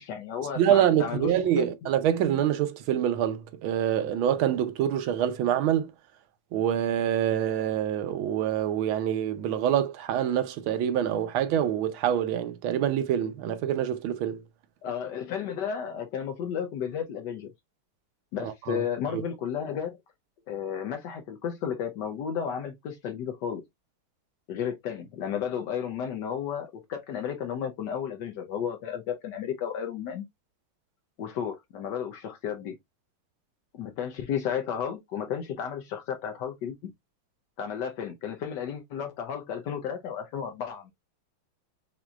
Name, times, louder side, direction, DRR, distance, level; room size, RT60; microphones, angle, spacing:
voice 1, 0.0-1.7 14.8-17.5 18.3-20.0 20.5-23.6 24.5-30.2 31.2-32.7 33.7-36.9 37.6-40.9, left 8 dB, 75° left, 1.1 m, -33 dB
voice 2, 0.6-5.9 6.5-14.4 18.4-18.8 19.1-19.2, right 10 dB, 75° right, 1.4 m, -26 dB
5.9 x 2.6 x 2.3 m
omnidirectional pair, 2.3 m